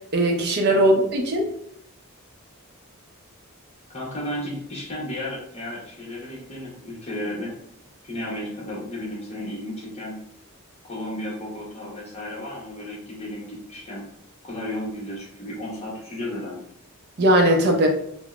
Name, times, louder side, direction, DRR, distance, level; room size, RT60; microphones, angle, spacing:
voice 1, 0.1-1.5 17.2-17.9, right 1 dB, 50° right, 2 dB, 0.5 m, -19 dB
voice 2, 3.9-7.6 8.0-10.2 10.8-14.0 14.4-16.6, left 1 dB, 30° left, -4 dB, 0.9 m, -33 dB
3.5 x 2.0 x 2.3 m, 0.71 s
head